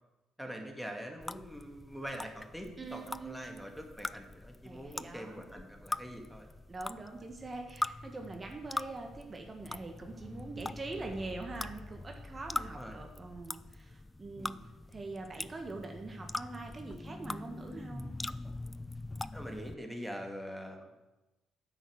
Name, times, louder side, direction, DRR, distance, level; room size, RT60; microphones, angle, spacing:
voice 1, 0.4-6.5 12.6-13.0 14.3-14.7 19.3-20.9, equal, ahead, 3 dB, 2.3 m, -44 dB
sound 1, 1.2-19.7, left 2 dB, 15° left, 0.4 m, -42 dB
voice 2, 2.8-3.6 4.6-5.4 6.7-14.6 14.9-18.1, right 3 dB, 35° right, 3 dB, 1.7 m, -43 dB
9.1 x 6.3 x 8.1 m, 1.0 s
supercardioid pair, 60°, 0 cm